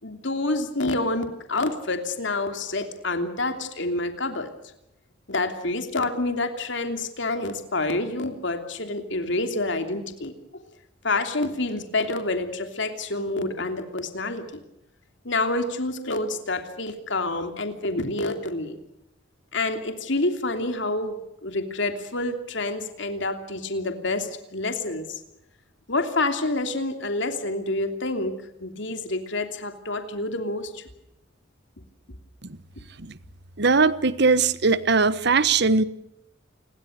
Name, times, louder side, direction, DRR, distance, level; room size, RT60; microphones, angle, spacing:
voice 1, 0.0-4.5 5.3-10.3 11.0-14.6 15.2-18.8 19.5-21.1 21.4-25.2 25.9-28.3 28.6-30.8, left 2 dB, 65° left, 7 dB, 3.1 m, -28 dB
voice 2, 33.6-35.8, right 4 dB, 60° right, 15 dB, 1.2 m, -20 dB
29.0 x 21.0 x 6.6 m, 0.85 s
head